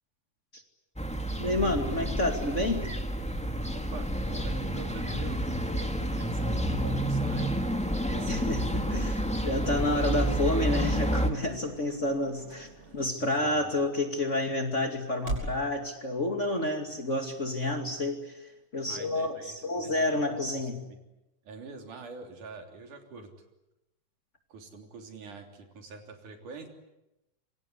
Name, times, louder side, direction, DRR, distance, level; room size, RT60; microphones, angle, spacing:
sound 1, 1.0-11.3, equal, 5° left, 1.4 m, -29 dB
voice 1, 1.4-2.9 6.4-6.6 8.3-12.7 12.9-20.8, left 1 dB, 25° left, 5 dB, 2.4 m, -30 dB
voice 2, 3.7-5.4 6.2-8.5 13.2-13.8 18.9-21.0 21.4-23.3 24.5-26.7, right 4 dB, 80° right, 4 dB, 4.9 m, -46 dB
sound 2, 4.2-13.1, right 2 dB, 20° right, 3.4 m, -50 dB
sound 3, 9.4-15.6, right 2 dB, 40° right, 7.2 m, -43 dB
27.5 x 25.0 x 8.4 m, 0.92 s
omnidirectional pair, 3.5 m